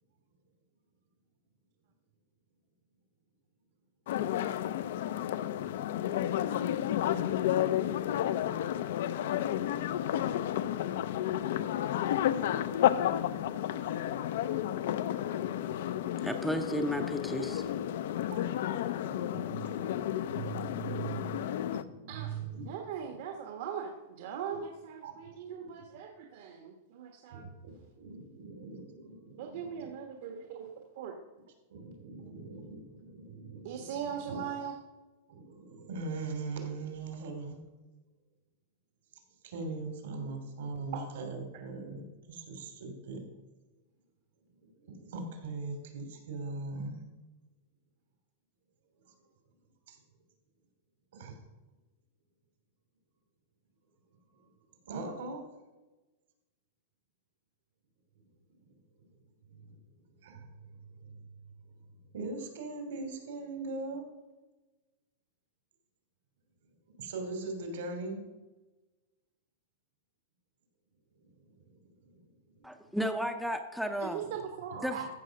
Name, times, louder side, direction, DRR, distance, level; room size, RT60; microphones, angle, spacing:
sound 1, 4.1-21.8, left 11 dB, 65° left, 0.6 m, -31 dB
voice 1, 16.2-17.6 72.6-74.2 74.8-75.0, equal, ahead, 5 dB, 0.6 m, -33 dB
voice 2, 19.0-22.7 25.0-25.1 25.6-25.7 27.3-29.9 31.7-34.4 35.3-37.6 39.4-43.2 44.6-47.0 49.0-49.1 49.9-50.0 51.1-51.4 54.3-54.5 54.8-55.4 58.6-58.8 59.4-59.8 60.2-60.5 60.9-61.2 62.1-64.1 66.9-68.2 71.4-72.2 72.6-73.0 74.7-74.8, right 3 dB, 75° right, 4 dB, 2.9 m, -41 dB
voice 3, 22.1-22.4 22.7-27.5 29.4-31.2 33.6-34.7 40.9-41.3 74.0-75.1, right 7 dB, 60° right, 3 dB, 1.3 m, -40 dB
14.5 x 5.0 x 6.5 m, 1.1 s
supercardioid pair, 155°, 0 cm